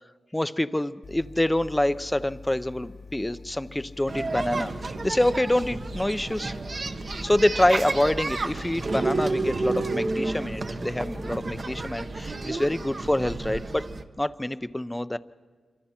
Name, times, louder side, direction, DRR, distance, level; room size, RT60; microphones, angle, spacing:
voice 1, 0.3-4.7 5.0-6.5 7.2-13.9 14.2-15.2, left 1 dB, 15° left, 14 dB, 0.6 m, -26 dB
sound 1, 1.0-12.0, left 4 dB, 70° left, 1.6 m, -45 dB
sound 2, 4.1-14.0, right 3 dB, 50° right, 1.2 m, -31 dB
27.0 x 24.0 x 4.4 m, 1.5 s
cardioid pair, 70°, 0 cm